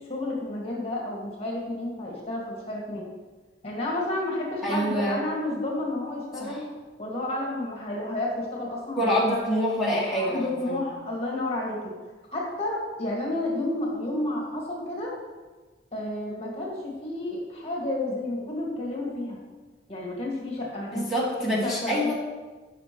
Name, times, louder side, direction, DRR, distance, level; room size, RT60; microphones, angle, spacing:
voice 1, 0.1-3.1 3.6-6.6 7.0-9.4 10.2-11.9 12.3-15.1 15.9-19.4 19.9-22.1, left 1 dB, 30° left, -4 dB, 2.0 m, -31 dB
voice 2, 4.6-5.2 6.4-6.6 9.0-10.8 20.9-22.1, equal, ahead, -7 dB, 2.1 m, -26 dB
16.0 x 6.0 x 3.2 m, 1.3 s
head